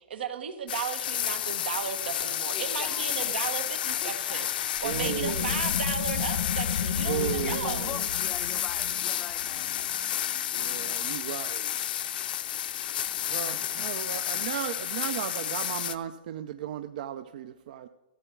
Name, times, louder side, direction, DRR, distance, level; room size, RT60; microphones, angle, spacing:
voice 1, 0.1-4.5 4.8-7.9, right 7 dB, 80° right, 9 dB, 1.3 m, -35 dB
sound 1, 0.7-15.9, left 11 dB, 60° left, 0.6 m, -31 dB
voice 2, 2.5-3.4 4.0-4.5 7.4-9.8, left 9 dB, 15° left, 13 dB, 0.3 m, -43 dB
sound 2, 4.8-10.1, left 7 dB, 80° left, 1.0 m, -33 dB
voice 3, 4.8-5.7 7.0-8.0 10.5-11.8 13.3-17.9, right 11 dB, 50° right, 11 dB, 0.5 m, -35 dB
14.5 x 8.1 x 4.6 m, 1.2 s
hypercardioid pair, 165°, 6 cm